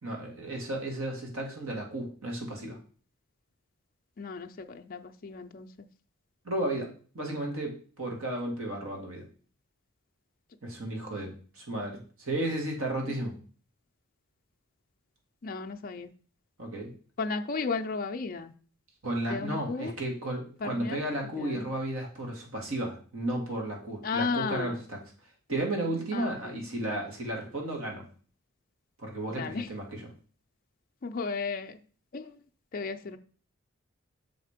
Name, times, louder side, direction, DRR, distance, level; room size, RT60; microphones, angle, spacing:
voice 1, 0.0-2.8 6.4-9.3 10.6-13.4 16.6-16.9 19.0-25.0 25.5-28.0 29.0-30.1, right 1 dB, 75° right, 1 dB, 2.0 m, -33 dB
voice 2, 4.2-5.7 15.4-16.1 17.2-18.5 19.3-19.9 20.6-21.0 21.4-21.7 24.0-24.7 26.1-26.5 29.3-29.7 31.0-31.8 32.1-32.3 32.7-33.2, left 4 dB, 40° left, 6 dB, 0.4 m, -34 dB
6.4 x 4.2 x 5.0 m, 0.41 s
head